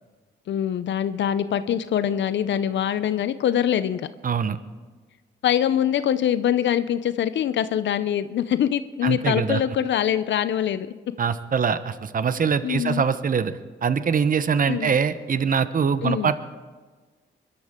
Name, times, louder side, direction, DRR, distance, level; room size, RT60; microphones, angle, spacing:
voice 1, 0.5-4.1 5.4-10.9 12.6-13.0 14.7-15.0 16.0-16.3, left 10 dB, 75° left, 13 dB, 0.6 m, -24 dB
voice 2, 4.2-4.6 9.0-9.6 11.2-13.5 13.8-16.4, right 6 dB, 50° right, 12 dB, 0.9 m, -23 dB
24.0 x 13.0 x 3.7 m, 1.4 s
cardioid pair, 65°, 19 cm